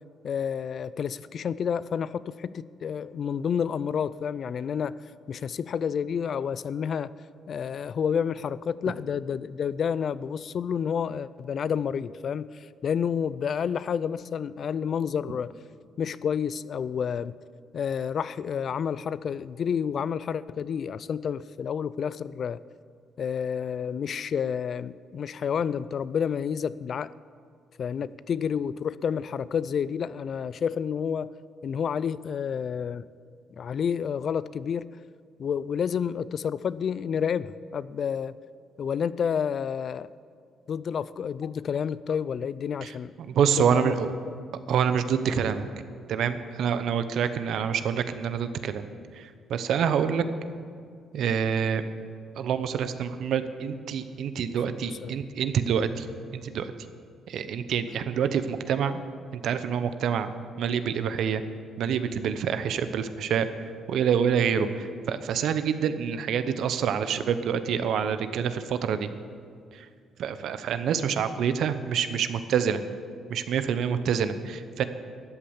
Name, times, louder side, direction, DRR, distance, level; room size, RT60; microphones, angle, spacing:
voice 1, 0.2-4.9 5.3-7.1 7.5-15.5 16.0-17.3 17.7-22.6 23.2-27.1 27.8-31.3 31.6-33.1 33.5-34.9 35.4-38.3 38.8-40.1 40.7-43.1 43.6-44.0 44.3-44.4 54.9-55.1, left 7 dB, 55° left, 18 dB, 0.4 m, -29 dB
voice 2, 43.3-44.1 44.7-45.6 46.1-48.9 49.2-50.2 51.1-51.8 52.4-56.1 56.3-56.7 57.3-59.0 59.4-60.3 60.6-61.4 61.8-63.5 63.9-69.1 70.2-72.8 73.3-74.8, right 7 dB, 75° right, 11 dB, 0.8 m, -26 dB
13.0 x 8.6 x 7.2 m, 2.2 s
cardioid pair, 90°, 0 cm